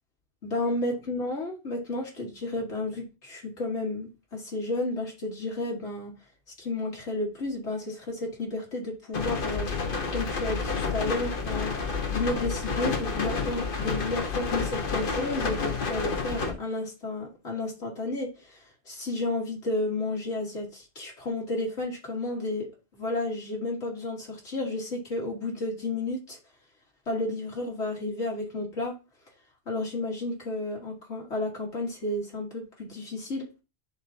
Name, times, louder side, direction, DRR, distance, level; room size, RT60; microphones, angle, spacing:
voice 1, 0.4-6.1 6.6-9.7 10.1-11.7 12.1-26.4 27.1-29.0 29.7-33.5, left 2 dB, 80° left, -2 dB, 2.0 m, -32 dB
sound 1, 9.1-16.5, left 4 dB, 50° left, 1.2 m, -30 dB
11.0 x 4.0 x 2.8 m, 0.28 s
omnidirectional pair, 1.1 m